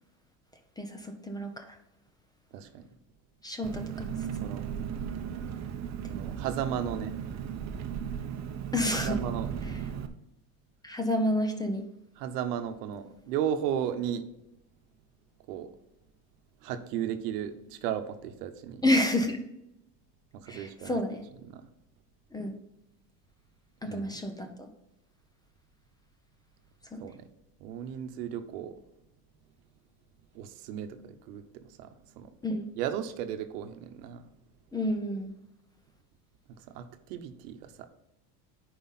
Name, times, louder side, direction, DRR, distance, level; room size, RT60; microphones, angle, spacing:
voice 1, 0.8-1.8 3.4-4.1 5.4-5.6 6.0-6.1 8.7-9.2 10.8-11.9 18.8-19.4 20.5-21.2 22.3-22.5 23.8-24.7 26.9-27.0 32.4-32.7 34.7-35.3, left 1 dB, 10° left, 5 dB, 0.7 m, -30 dB
voice 2, 2.5-2.8 4.4-4.6 6.1-7.2 9.0-9.5 12.2-14.3 15.5-15.7 16.6-18.8 20.3-21.0 21.5-21.7 23.8-24.1 27.0-27.3 27.6-28.7 30.3-31.9 32.2-32.3 32.8-34.3 36.5-37.9, right 9 dB, 85° right, 9 dB, 1.1 m, -35 dB
Engine, 3.6-10.1, right 8 dB, 35° right, 0.8 m, -36 dB
10.0 x 5.0 x 4.1 m, 0.87 s
supercardioid pair, 130°, 47 cm